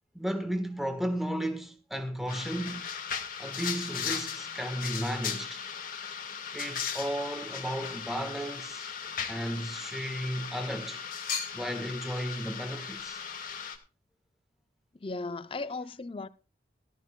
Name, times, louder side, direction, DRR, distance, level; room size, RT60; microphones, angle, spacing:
voice 1, 0.1-2.9 3.4-5.6 6.5-8.9 9.3-11.0 11.5-13.2, equal, ahead, 1.3 m, -34 dB
sound 1, 2.3-13.8, left 7 dB, 50° left, 1.6 m, -37 dB
voice 2, 15.0-16.3, left 3 dB, 30° left, 0.5 m, -36 dB
18.0 x 13.5 x 2.2 m
head